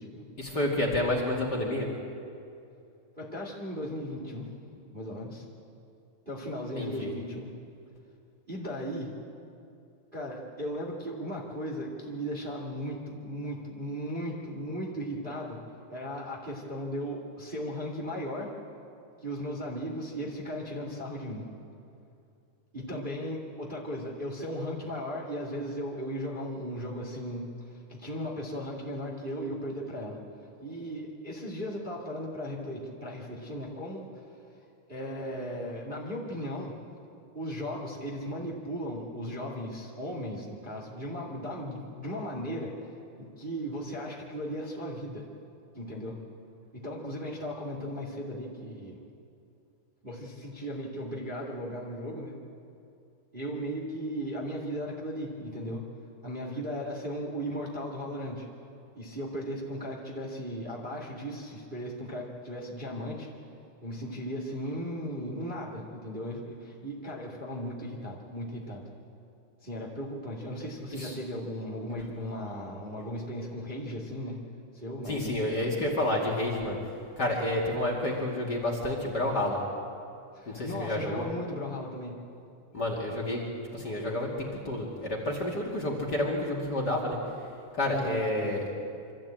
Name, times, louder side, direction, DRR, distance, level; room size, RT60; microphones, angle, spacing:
voice 1, 0.4-1.9 6.8-7.1 71.0-71.1 75.1-76.8 77.2-79.6 80.5-81.2 82.7-83.4 83.7-87.2 87.7-88.7, left 1 dB, 35° left, -1 dB, 2.6 m, -29 dB
voice 2, 3.2-4.5 4.9-5.5 6.3-7.5 8.5-9.1 10.1-15.6 15.9-18.5 19.2-21.5 22.7-30.2 30.6-34.2 34.9-36.8 37.3-42.7 43.2-45.3 45.7-46.2 46.7-49.0 50.0-52.4 53.3-55.9 56.2-58.4 58.9-63.3 63.8-68.8 69.6-74.4 74.7-75.9 80.3-82.2 87.9-88.2, equal, 20° right, -3 dB, 2.1 m, -36 dB
25.0 x 14.0 x 8.8 m, 2.5 s
omnidirectional pair, 3.7 m